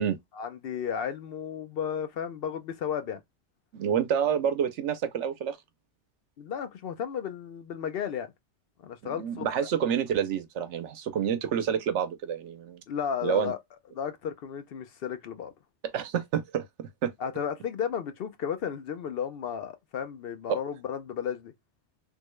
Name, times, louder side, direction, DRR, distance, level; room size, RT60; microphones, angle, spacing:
voice 1, 0.4-3.2 6.4-8.3 8.8-9.7 12.9-13.6 13.9-15.5 17.2-21.5, left 8 dB, 65° left, 0.7 m, -33 dB
voice 2, 3.7-5.6 9.0-12.8 13.2-13.5 15.9-17.1 20.5-20.6, right 8 dB, 85° right, 0.9 m, -28 dB
3.5 x 2.2 x 3.0 m
omnidirectional pair, 1.2 m